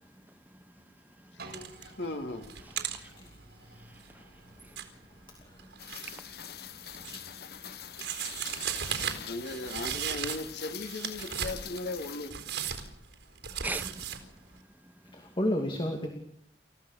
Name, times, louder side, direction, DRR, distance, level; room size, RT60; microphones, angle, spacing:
voice 1, 0.0-2.0 2.6-3.3 3.6-9.3 9.6-9.9 13.6-15.4, right 2 dB, 10° right, 0.8 m, -47 dB
sound 1, 1.4-7.1 7.7-7.8, right 2 dB, 60° right, 6.9 m, -54 dB
sound 2, 1.5-1.9 2.3-6.3 6.7-7.5 8.0-10.5 10.8-14.2, right 8 dB, 85° right, 4.3 m, -37 dB
voice 2, 1.8-2.5 9.3-12.3, left 2 dB, 75° left, 3.1 m, -37 dB
Rain, 5.8-12.3, left 10 dB, 60° left, 1.0 m, -44 dB
voice 3, 15.1-16.1, left 1 dB, 30° left, 2.6 m, -30 dB
29.0 x 15.5 x 6.8 m
head